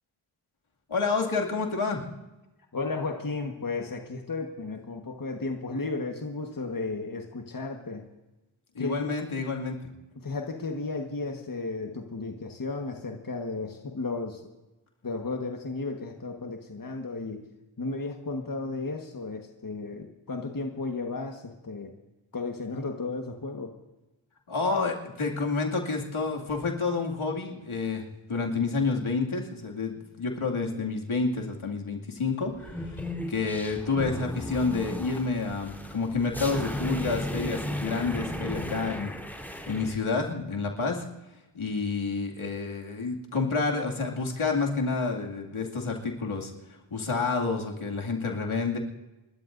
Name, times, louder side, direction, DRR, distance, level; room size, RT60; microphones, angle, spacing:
voice 1, 0.9-2.0 8.7-9.8 24.5-39.1 39.4-41.0 41.5-48.8, left 4 dB, 75° left, 0 dB, 2.4 m, -29 dB
voice 2, 2.7-8.0 8.8-9.1 10.2-14.4 15.0-17.4 17.8-21.9 22.3-23.7, left 3 dB, 40° left, 3 dB, 1.5 m, -34 dB
sound 1, 32.6-40.0, equal, 5° left, 3.8 m, -35 dB
27.5 x 13.0 x 2.6 m, 1.0 s
cardioid pair, 45°, 49 cm